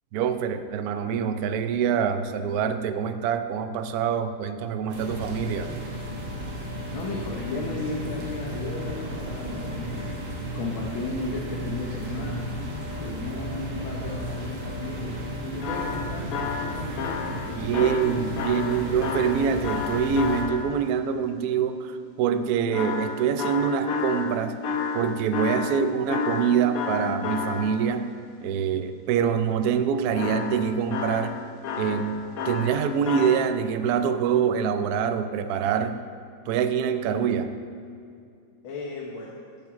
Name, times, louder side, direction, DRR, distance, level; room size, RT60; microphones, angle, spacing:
voice 1, 0.1-5.7 17.6-24.6 24.9-28.1 28.4-31.4 31.8-36.0 36.5-37.5, right 7 dB, 80° right, 9 dB, 0.8 m, -25 dB
sound 1, 4.9-20.4, equal, 55° right, 1.6 m, -34 dB
voice 2, 6.9-10.2 10.5-12.5 13.0-18.7 38.6-39.3, left 2 dB, 90° left, -2 dB, 1.8 m, -35 dB
sound 2, 15.6-20.9 22.7-28.0 30.1-33.5, left 5 dB, 65° left, 0.9 m, -31 dB
7.7 x 5.8 x 7.1 m, 2.4 s
omnidirectional pair, 2.2 m